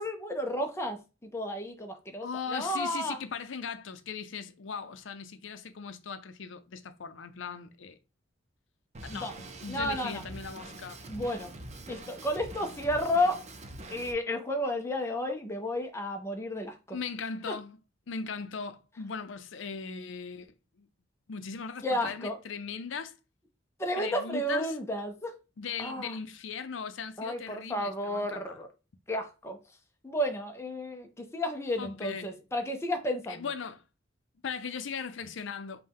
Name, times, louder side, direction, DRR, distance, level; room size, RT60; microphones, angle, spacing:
voice 1, 0.0-3.2 9.1-9.3 9.7-10.2 11.1-11.5 11.9-13.4 13.9-17.0 17.5-17.6 21.8-22.4 23.8-25.3 25.8-26.1 27.2-28.7 29.1-29.6 30.0-33.4, left 1 dB, 15° left, 0.5 m, -32 dB
voice 2, 2.2-8.0 9.0-9.3 9.6-11.0 16.9-17.8 18.1-20.5 20.8-20.9 21.3-23.1 24.0-24.8 25.6-28.6 31.8-32.3 33.3-33.8 34.4-35.8, left 5 dB, 80° left, 0.5 m, -38 dB
Drum kit, 8.9-14.1, right 2 dB, 40° right, 0.6 m, -44 dB
5.4 x 2.2 x 3.4 m
head